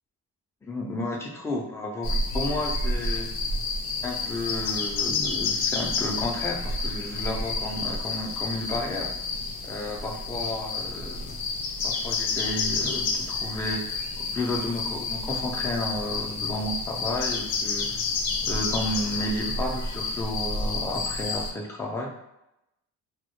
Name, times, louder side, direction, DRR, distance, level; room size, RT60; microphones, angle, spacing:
voice 1, 0.6-3.3 4.0-9.1 9.6-11.4 11.8-18.0 18.4-22.2, left 1 dB, 10° left, 0 dB, 0.3 m, -32 dB
sound 1, 2.0-21.5, left 3 dB, 70° left, 0.5 m, -29 dB
2.1 x 2.0 x 2.9 m, 0.87 s
cardioid pair, 100°, 38 cm